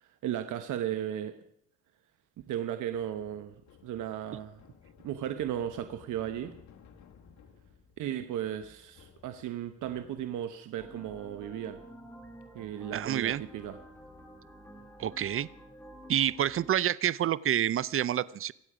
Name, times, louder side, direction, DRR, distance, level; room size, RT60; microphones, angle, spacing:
voice 1, 0.0-1.4 2.5-3.5 3.8-4.6 5.0-6.5 8.0-11.8 12.5-13.8, right 10 dB, 80° right, 8 dB, 1.1 m, -35 dB
sound 1, 2.9-10.6, left 7 dB, 70° left, 2.0 m, -58 dB
sound 2, 10.8-16.7, equal, 5° left, 2.3 m, -50 dB
voice 2, 12.9-13.4 15.0-15.5 16.1-18.5, right 11 dB, 45° right, 20 dB, 0.6 m, -28 dB
25.0 x 8.4 x 5.0 m, 0.71 s
cardioid pair, 90°, 30 cm